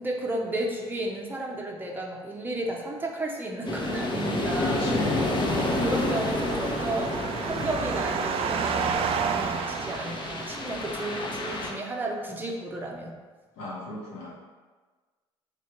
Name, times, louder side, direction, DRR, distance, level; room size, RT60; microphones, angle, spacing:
voice 1, 0.0-4.8 5.5-7.1 7.4-13.2, right 1 dB, 15° right, -1 dB, 0.7 m, -33 dB
sound 1, 3.6-11.7, left 2 dB, 30° left, 0.8 m, -30 dB
voice 2, 4.5-5.3 13.6-14.4, left 3 dB, 65° left, -4 dB, 1.2 m, -35 dB
sound 2, 4.7-10.9, right 6 dB, 40° right, 0.3 m, -31 dB
3.4 x 2.8 x 4.4 m, 1.4 s
hypercardioid pair, 55°, 15 cm